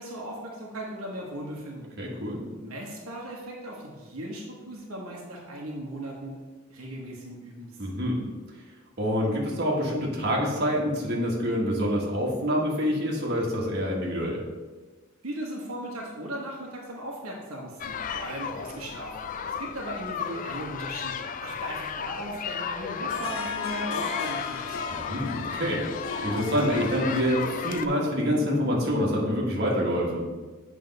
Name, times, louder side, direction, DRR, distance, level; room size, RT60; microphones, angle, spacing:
voice 1, 0.0-1.9 2.6-6.4 6.7-7.9 15.2-19.3 19.6-24.8, right 1 dB, 85° right, -2 dB, 1.2 m, -37 dB
voice 2, 2.0-2.4 7.8-8.2 9.0-14.4 24.9-25.8 26.2-30.2, equal, 50° right, -3 dB, 1.5 m, -26 dB
sound 1, 17.8-27.9, left 7 dB, 40° left, 0.3 m, -34 dB
Harp, 23.1-28.6, left 4 dB, 70° left, 0.8 m, -37 dB
7.8 x 3.5 x 5.3 m, 1.3 s
head